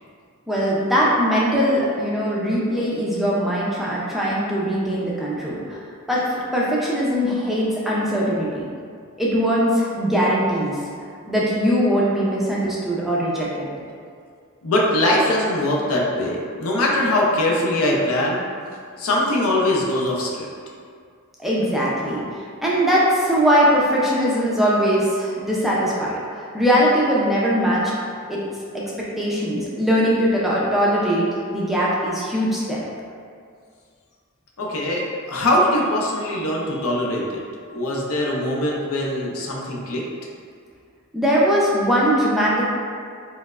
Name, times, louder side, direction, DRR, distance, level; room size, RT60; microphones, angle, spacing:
voice 1, 0.5-5.8 6.1-8.7 9.2-10.8 11.3-13.7 21.4-27.9 28.3-28.4 28.7-32.8 41.1-42.7, equal, ahead, -7 dB, 0.4 m, -21 dB
voice 2, 14.6-18.4 19.0-20.5 34.6-37.4 37.7-40.0, left 1 dB, 70° left, -2 dB, 0.5 m, -22 dB
4.3 x 2.0 x 2.3 m, 2.2 s
head